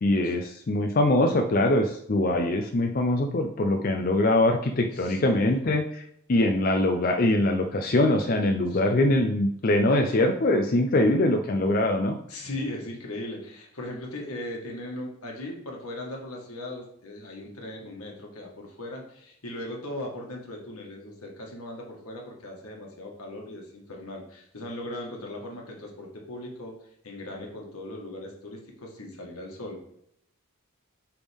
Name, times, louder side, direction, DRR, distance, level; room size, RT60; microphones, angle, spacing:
voice 1, 0.0-5.8 6.3-12.2, left 1 dB, 40° left, 4 dB, 0.4 m, -23 dB
voice 2, 4.9-5.7 8.7-9.1 12.3-26.8 27.0-29.8, left 1 dB, 85° left, 0 dB, 1.6 m, -38 dB
8.9 x 3.6 x 3.5 m, 0.72 s
head